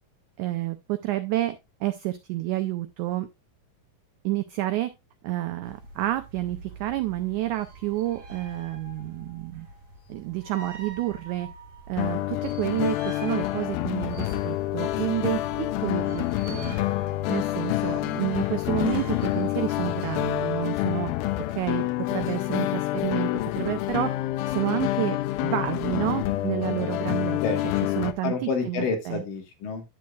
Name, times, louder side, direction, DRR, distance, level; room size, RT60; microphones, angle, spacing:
voice 1, 0.4-1.5 1.8-3.3 4.2-4.9 5.2-9.7 10.1-11.5 11.9-16.2 16.5-16.7 17.3-21.1 21.6-21.8 22.1-23.3 23.6-24.1 24.5-25.2 25.4-27.4 28.0-29.2, right 16 dB, 85° right, 9 dB, 1.7 m, -29 dB
sound 1, 5.6-20.6, right 3 dB, 55° right, 5.1 m, -45 dB
sound 2, 12.0-28.1, left 16 dB, 85° left, 2.5 m, -27 dB
voice 2, 27.4-27.9 28.2-29.8, left 4 dB, 70° left, 4 dB, 3.0 m, -29 dB
10.0 x 8.5 x 2.3 m, 0.22 s
omnidirectional pair, 4.2 m